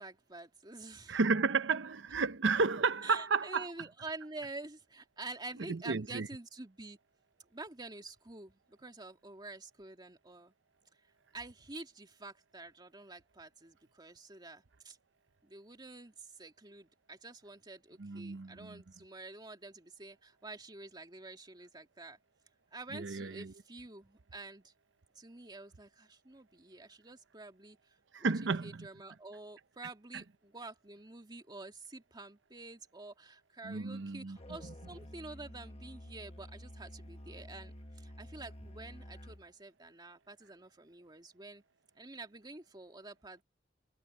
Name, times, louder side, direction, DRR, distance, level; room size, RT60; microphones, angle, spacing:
voice 1, 0.0-1.2 3.0-7.0 7.5-10.5 11.3-15.0 15.4-22.2 22.7-24.7 25.1-41.6 42.0-43.4, right 2 dB, 25° right, 2.3 m, -48 dB
voice 2, 1.1-3.7 5.7-6.3 18.0-18.8 22.9-23.5 28.1-28.9 33.6-34.4, right 4 dB, 90° right, 0.8 m, -32 dB
Musical instrument, 34.4-39.5, left 1 dB, 35° left, 1.4 m, -50 dB
head